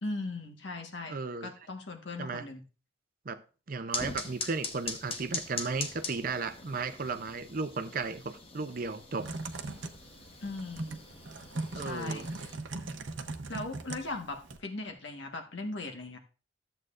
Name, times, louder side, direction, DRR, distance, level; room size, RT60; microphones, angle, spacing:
voice 1, 0.0-2.6 10.4-11.0 11.7-12.5 13.5-16.2, left 2 dB, 65° left, 1.4 m, -39 dB
voice 2, 1.1-1.5 2.2-2.5 3.3-3.4 3.7-9.3 11.7-12.3, right 4 dB, 45° right, 0.6 m, -35 dB
sound 1, 3.9-12.6, left 4 dB, 30° left, 0.9 m, -42 dB
Typing, 9.2-14.6, right 3 dB, 70° right, 0.8 m, -40 dB
13.0 x 7.8 x 2.5 m
head